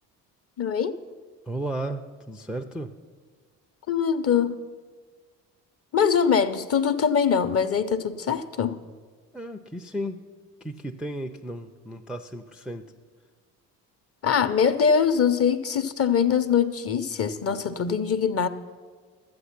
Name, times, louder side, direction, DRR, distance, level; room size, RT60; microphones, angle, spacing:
voice 1, 0.6-1.0 3.9-4.6 5.9-8.8 14.2-18.5, left 7 dB, 30° left, 11 dB, 0.7 m, -23 dB
voice 2, 1.5-2.9 9.3-10.2 10.6-12.9, right 1 dB, ahead, 4 dB, 0.4 m, -34 dB
12.0 x 8.0 x 5.9 m, 1.5 s
hypercardioid pair, 50°, 47 cm